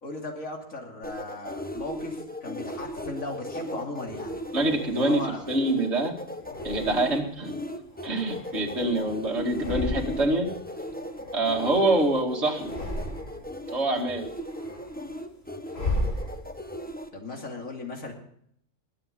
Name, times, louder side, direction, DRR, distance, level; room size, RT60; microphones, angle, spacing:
voice 1, 0.0-4.4 4.9-5.4 17.1-18.1, left 2 dB, 90° left, 1 dB, 3.2 m, -36 dB
sound 1, 1.0-17.1, equal, 5° left, 1.0 m, -37 dB
sound 2, 4.5-5.7 6.4-7.3 7.8-9.0 9.4-10.5 10.7-12.1 12.5-13.6 14.0-16.8, left 1 dB, 50° left, 3.8 m, -35 dB
voice 2, 4.5-6.1 6.6-7.5 8.0-10.5 11.3-12.7 13.7-14.3, right 2 dB, 55° right, -1 dB, 2.6 m, -25 dB
21.0 x 8.7 x 5.3 m, 0.68 s
omnidirectional pair, 1.4 m